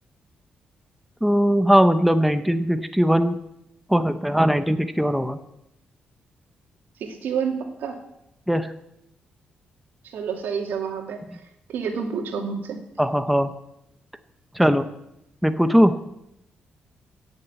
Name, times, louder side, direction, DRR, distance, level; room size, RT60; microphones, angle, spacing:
voice 1, 1.2-3.4 3.9-5.4 8.5-8.7 13.0-13.5 14.6-14.9 15.4-16.0, equal, ahead, 9 dB, 0.6 m, -19 dB
voice 2, 7.0-8.0 10.1-11.2 11.7-12.8, right 6 dB, 85° right, 3 dB, 2.4 m, -28 dB
16.5 x 7.1 x 8.2 m, 0.83 s
wide cardioid pair, 165°, 3 cm